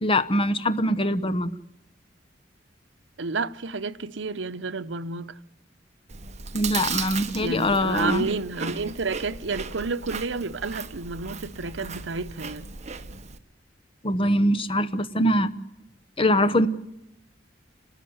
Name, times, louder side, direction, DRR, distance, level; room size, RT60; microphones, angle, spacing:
voice 1, 0.0-1.5 6.5-8.3 14.0-15.5 16.2-16.7, left 1 dB, 30° left, 1.0 m, -23 dB
voice 2, 3.2-5.4 7.4-12.7, right 4 dB, 80° right, 0.9 m, -30 dB
Chewing mastication, 6.1-13.4, right 5 dB, 40° right, 1.3 m, -36 dB
29.5 x 13.5 x 9.5 m
head